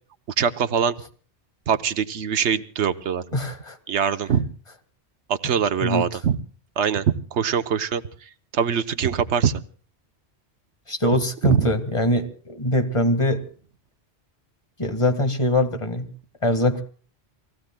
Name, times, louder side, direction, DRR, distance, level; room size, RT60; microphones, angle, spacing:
voice 1, 0.4-1.0 1.7-3.2 3.9-4.5 5.3-6.4 6.8-8.0 8.5-9.5 11.4-11.7, right 7 dB, 85° right, 11 dB, 1.2 m, -23 dB
voice 2, 3.3-3.8 5.8-6.0 10.9-13.4 14.8-16.1 16.4-16.8, left 1 dB, 30° left, 7 dB, 1.8 m, -22 dB
29.5 x 19.0 x 2.2 m, 0.42 s
omnidirectional pair, 1.1 m